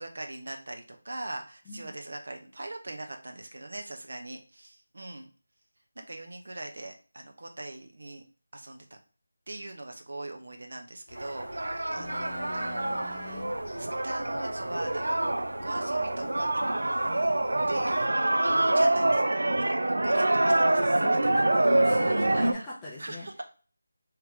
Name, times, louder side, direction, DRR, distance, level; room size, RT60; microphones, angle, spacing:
voice 1, 0.0-5.3 6.0-8.2 8.5-8.9 9.5-11.5 11.9-13.4 13.8-15.4 15.6-16.6 17.7-18.1 18.6-19.4 19.7-20.8 21.1-21.3 22.3-22.5 23.0-23.4, right 2 dB, 50° right, 3 dB, 0.6 m, -41 dB
sound 1, 11.1-18.1, left 1 dB, 65° left, 0.7 m, -48 dB
sound 2, 11.2-22.5, right 2 dB, 90° right, 0.4 m, -26 dB
voice 2, 12.0-13.5 20.8-23.3, left 2 dB, 5° left, -7 dB, 0.4 m, -42 dB
3.5 x 2.9 x 3.5 m, 0.37 s
figure-of-eight pair, 180°, 0 cm